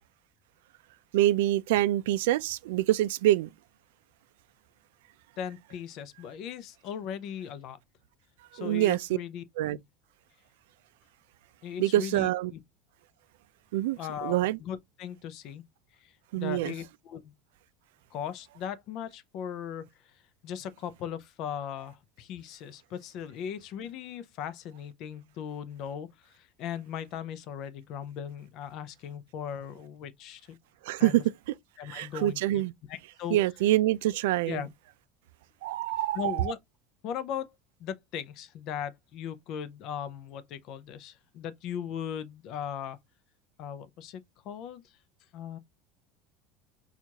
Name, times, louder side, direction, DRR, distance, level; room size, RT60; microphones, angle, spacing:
voice 1, 1.1-3.5 8.6-9.1 9.6-9.8 11.8-12.5 13.7-14.6 16.3-16.7 30.8-31.6 31.8-32.7 33.3-34.7 35.6-36.5, right 15 dB, 85° right, 0.3 m, -26 dB
voice 2, 5.4-7.8 8.5-9.4 9.7-9.8 11.6-12.6 14.0-15.6 16.0-17.3 18.1-19.9 20.4-30.6 31.0-31.2 31.8-32.6 32.9-33.4 34.5-34.7 36.1-36.6 37.0-37.5 37.8-43.0 43.6-44.8 45.3-45.6, left 8 dB, 40° left, 0.4 m, -38 dB
4.5 x 2.4 x 2.8 m
cardioid pair, 170°, 0 cm